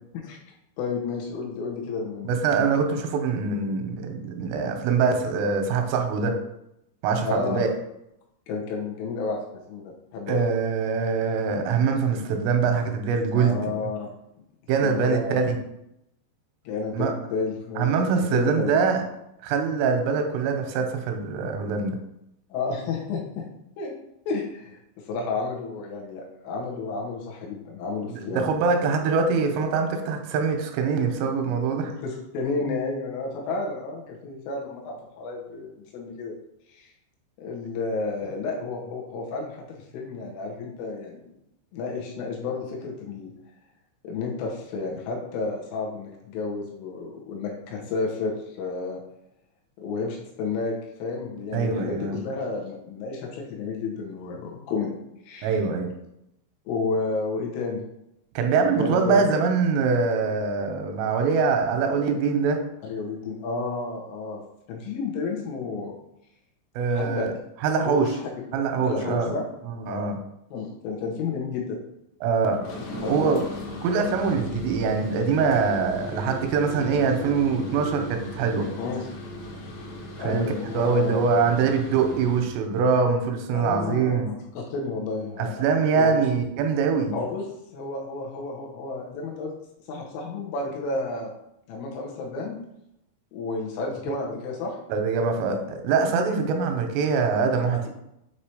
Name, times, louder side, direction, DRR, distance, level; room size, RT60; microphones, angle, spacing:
voice 1, 0.8-2.4 7.2-7.6 8.5-9.4 9.7-10.5 13.3-14.1 14.8-15.5 16.7-18.0 18.3-18.8 22.5-23.5 23.8-23.9 24.3-24.8 25.1-28.5 31.9-36.3 36.7-36.9 37.4-41.2 41.7-43.3 44.0-49.0 49.8-55.0 55.3-55.5 56.7-57.8 58.6-59.2 62.8-64.4 64.7-65.9 66.9-67.3 67.9-68.4 68.8-69.4 69.9-70.1 70.5-71.8 72.8-73.4 78.8-79.1 80.2-81.2 83.5-85.7 85.9-86.2 87.1-87.5 87.7-89.5 89.9-91.3 91.7-92.6 93.3-94.8 95.4-95.6 97.7-97.9, left 4 dB, 80° left, -2 dB, 3.7 m, -31 dB
voice 2, 2.2-6.3 7.0-7.7 10.3-13.6 14.7-15.6 16.9-17.1 17.8-19.0 19.4-21.9 28.1-31.9 51.5-52.2 55.4-55.9 58.4-62.6 66.8-67.3 67.6-68.1 68.5-69.3 69.6-70.2 72.2-72.6 73.1-73.4 73.8-78.7 80.2-84.3 85.4-87.1 94.9-97.9, right 5 dB, 90° right, 4 dB, 3.3 m, -23 dB
sound 1, 72.5-82.6, left 1 dB, 65° left, 2.5 m, -37 dB
8.3 x 3.0 x 4.9 m, 0.83 s
omnidirectional pair, 5.7 m